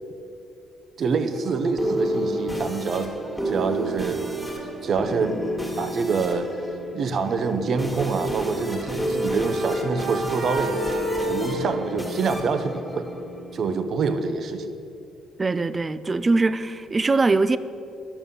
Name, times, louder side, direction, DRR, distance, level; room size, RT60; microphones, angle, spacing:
voice 1, 1.0-3.1 3.4-4.2 4.8-5.4 5.8-6.5 6.9-10.7 11.2-13.1 13.5-14.7, right 4 dB, 45° right, 8 dB, 0.8 m, -26 dB
sound 1, 1.3-13.8, right 1 dB, ahead, 1.9 m, -31 dB
sound 2, 8.8-12.7, equal, 80° right, 1.9 m, -31 dB
voice 2, 15.4-17.6, right 3 dB, 20° right, 14 dB, 0.4 m, -22 dB
11.0 x 7.0 x 7.1 m, 2.6 s
cardioid pair, 160°, 0 cm